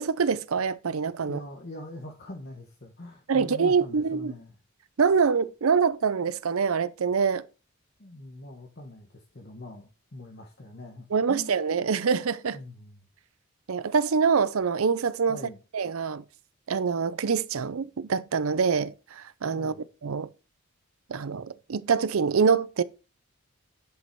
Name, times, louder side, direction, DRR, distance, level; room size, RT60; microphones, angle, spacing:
voice 1, 0.0-1.4 3.3-4.3 5.0-7.4 11.1-12.6 13.7-15.4 15.7-16.2 16.7-19.7 20.0-20.3 21.1-22.8, right 5 dB, 75° right, 0.5 m, -25 dB
voice 2, 1.2-4.5 8.0-11.6 12.5-13.1 15.3-15.6 19.5-19.8, left 1 dB, 50° left, 1.3 m, -43 dB
10.5 x 5.3 x 4.6 m
head